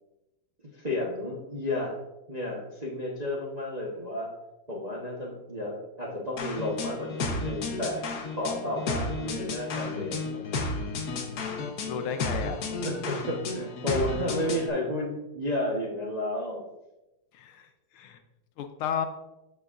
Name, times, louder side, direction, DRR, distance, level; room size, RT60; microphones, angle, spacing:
voice 1, 0.7-2.0 2.3-4.3 4.7-8.0 8.4-10.4 12.8-16.6, left 1 dB, 35° right, -5 dB, 0.6 m, -32 dB
sound 1, 6.4-14.7, left 3 dB, 55° left, 1.2 m, -33 dB
voice 2, 11.9-12.6 17.3-17.7 17.9-18.2 18.6-19.1, left 7 dB, 80° left, 8 dB, 1.5 m, -33 dB
13.5 x 4.5 x 2.5 m, 0.97 s
omnidirectional pair, 2.4 m